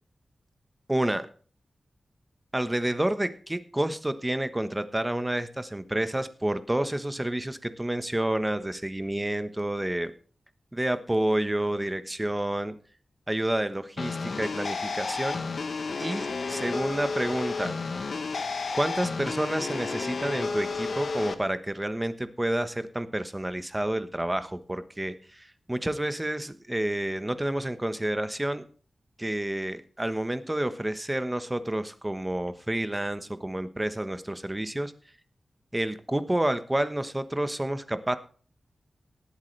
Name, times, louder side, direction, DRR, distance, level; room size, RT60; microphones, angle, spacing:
voice 1, 0.9-1.3 2.5-10.1 10.7-12.7 13.3-15.4 16.0-17.8 18.7-28.6 29.2-34.9 35.7-38.2, right 1 dB, 15° right, 10 dB, 1.2 m, -29 dB
sound 1, 14.0-21.3, left 4 dB, 70° left, 1.0 m, -31 dB
18.5 x 8.4 x 3.3 m, 0.42 s
cardioid pair, 60°, 0 cm